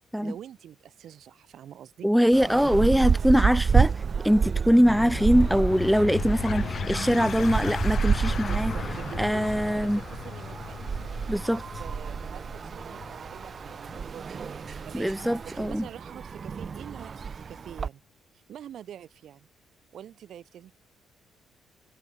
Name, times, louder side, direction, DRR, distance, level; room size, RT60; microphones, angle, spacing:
voice 1, 0.2-2.1 7.0-7.5 8.4-10.8 11.5-18.0 18.5-19.5 19.9-20.7, right 10 dB, 70° right, 5.5 m, -45 dB
voice 2, 2.0-8.7 9.2-10.0 11.3-11.6 14.9-15.9, equal, ahead, 0.5 m, -22 dB
sound 1, 2.3-17.9, right 6 dB, 45° right, 1.3 m, -30 dB
sound 2, 4.8-15.9, left 7 dB, 50° left, 3.8 m, -36 dB
cardioid pair, 90°, 0 cm